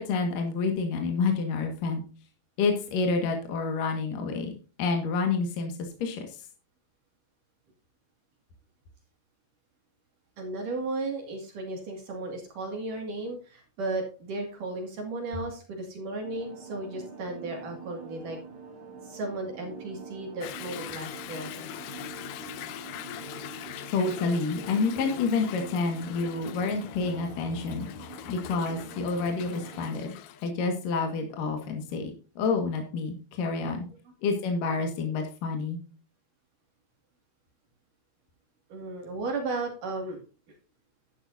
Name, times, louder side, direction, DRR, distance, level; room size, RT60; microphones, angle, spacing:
voice 1, 0.0-2.0 2.6-4.5 4.8-6.4 23.9-30.1 30.4-33.9 34.2-35.8, left 4 dB, 65° left, 4 dB, 3.2 m, -28 dB
voice 2, 10.4-18.4 19.0-21.7 33.9-34.1 38.7-40.2, right 2 dB, 60° right, 2 dB, 3.6 m, -35 dB
sound 1, 16.2-29.8, right 5 dB, 35° right, 3.0 m, -45 dB
Toilet flush / Drip / Trickle dribble, 20.4-30.5, left 12 dB, 80° left, 1.8 m, -42 dB
11.5 x 11.5 x 2.7 m, 0.36 s
omnidirectional pair, 4.4 m